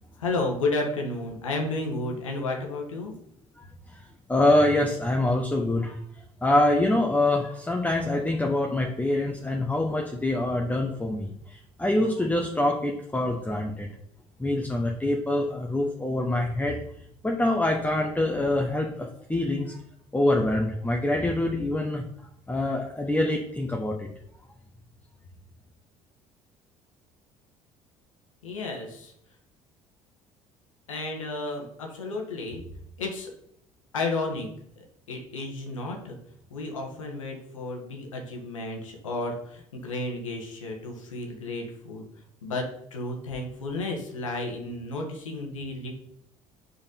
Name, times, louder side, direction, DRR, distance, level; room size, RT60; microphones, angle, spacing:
voice 1, 0.2-3.1 28.4-29.1 30.9-32.6 33.0-33.3 33.9-34.5 34.8-36.2 36.5-42.0 42.4-46.0, left 2 dB, 90° left, 2 dB, 1.5 m, -32 dB
voice 2, 4.3-6.0 6.4-13.9 14.4-16.8 17.2-19.8 20.1-22.0 22.5-24.1, left 1 dB, 10° left, 1 dB, 1.2 m, -25 dB
5.4 x 4.7 x 5.4 m, 0.71 s
hypercardioid pair, 60°, 16 cm